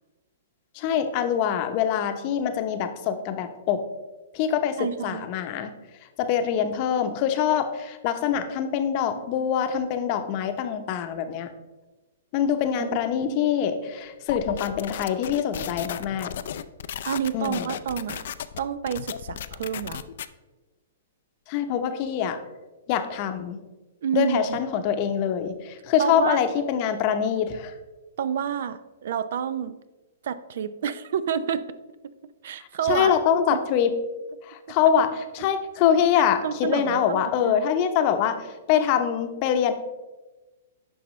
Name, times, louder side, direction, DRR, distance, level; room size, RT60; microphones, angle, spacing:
voice 1, 0.7-3.8 4.3-5.7 6.2-11.5 12.3-16.3 17.3-17.7 21.5-22.4 22.9-23.6 24.1-27.7 32.8-33.9 34.4-38.3 38.7-39.7, left 8 dB, 40° left, 8 dB, 0.8 m, -24 dB
voice 2, 4.8-5.3 12.8-12.9 13.3-13.6 17.0-18.3 18.6-20.0 24.0-24.6 26.0-26.4 28.2-29.8 30.2-31.6 32.4-33.1 33.5-33.6 36.2-37.7, right 8 dB, 65° right, 14 dB, 0.5 m, -29 dB
sound 1, 14.3-20.3, left 10 dB, 65° left, 0.4 m, -35 dB
9.9 x 5.5 x 3.1 m, 1.1 s
hypercardioid pair, 145°, 0 cm